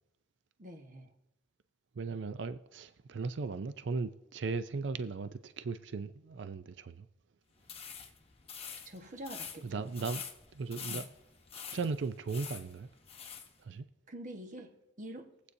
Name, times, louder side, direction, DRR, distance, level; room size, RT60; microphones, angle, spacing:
voice 1, 0.6-1.1 8.8-9.8 10.9-11.1 14.1-14.7 15.0-15.3, right 1 dB, 45° right, 1.2 m, -46 dB
voice 2, 2.0-7.1 9.6-10.2 10.5-11.0 11.7-12.9 13.6-13.9, right 4 dB, 65° right, 0.4 m, -37 dB
sound 1, 7.6-13.5, left 7 dB, 30° left, 1.0 m, -46 dB
22.0 x 8.2 x 2.7 m
head